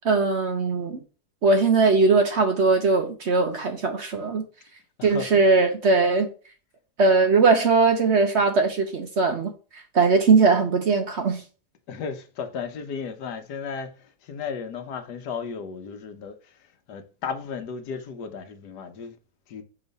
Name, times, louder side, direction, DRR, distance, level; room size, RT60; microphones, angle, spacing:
voice 1, 0.0-1.0 1.4-4.4 5.0-6.3 7.0-11.4, right 4 dB, 55° right, 0.8 m, -20 dB
voice 2, 5.0-5.4 11.9-16.6 16.9-19.2 19.5-19.6, left 6 dB, 85° left, 1.4 m, -34 dB
6.3 x 3.0 x 5.2 m
omnidirectional pair, 1.7 m